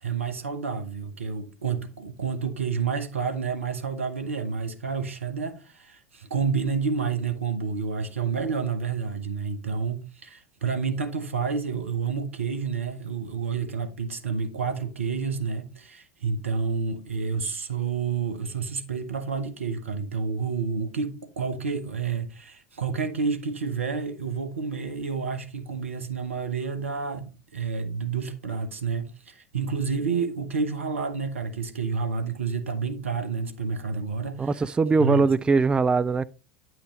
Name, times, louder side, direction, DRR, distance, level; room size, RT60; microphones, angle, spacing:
voice 1, 0.0-34.6 35.0-35.2, right 5 dB, 80° right, 1.0 m, -29 dB
voice 2, 34.4-36.3, right 4 dB, 15° right, 0.3 m, -21 dB
9.9 x 6.2 x 3.2 m
figure-of-eight pair, 75°, 7 cm